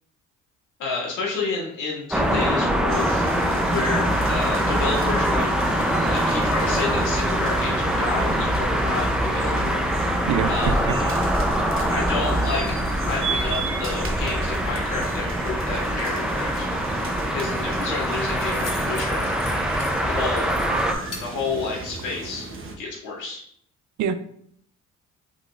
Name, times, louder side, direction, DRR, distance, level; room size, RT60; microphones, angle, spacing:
voice 1, 0.8-3.1 3.7-9.9 10.5-10.7 11.9-12.8 13.1-16.7 17.3-19.3 20.0-20.5 21.2-22.5 22.8-23.4, left 4 dB, 80° left, -4 dB, 2.0 m, -30 dB
sound 1, 2.1-20.9, equal, 5° right, 0.5 m, -24 dB
sound 2, 2.9-22.8, right 3 dB, 45° right, 0.9 m, -34 dB
voice 2, 10.3-10.9 24.0-24.2, right 8 dB, 70° right, 11 dB, 0.5 m, -25 dB
Keys jangling, 17.4-22.3, left 3 dB, 55° left, 1.1 m, -43 dB
5.5 x 4.0 x 2.4 m, 0.66 s
cardioid pair, 90°, 30 cm